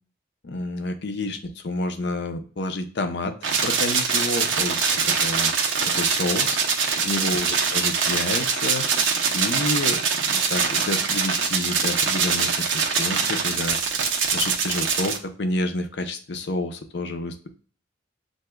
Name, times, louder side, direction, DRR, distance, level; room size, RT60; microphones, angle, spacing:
voice 1, 0.4-3.4 3.6-5.5 5.8-6.6 7.0-8.9 9.3-13.8 14.3-17.5, left 2 dB, 60° left, 7 dB, 0.6 m, -29 dB
sound 1, 3.4-15.2, right 5 dB, 85° right, 0.8 m, -23 dB
7.5 x 2.6 x 2.2 m, 0.42 s
head